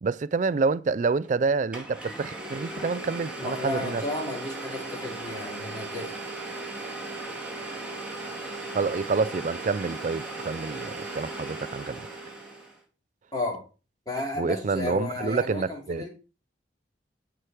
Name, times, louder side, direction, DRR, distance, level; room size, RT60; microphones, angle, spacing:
voice 1, 0.0-4.0 8.7-12.1 14.4-16.1, right 4 dB, 40° right, 0.3 m, -28 dB
Domestic sounds home sounds, 1.2-1.3 1.7-12.8, right 2 dB, 5° right, 2.1 m, -37 dB
voice 2, 3.4-6.1 13.3-13.6 14.0-16.1, left 2 dB, 20° left, 3.4 m, -33 dB
13.0 x 4.9 x 4.5 m
head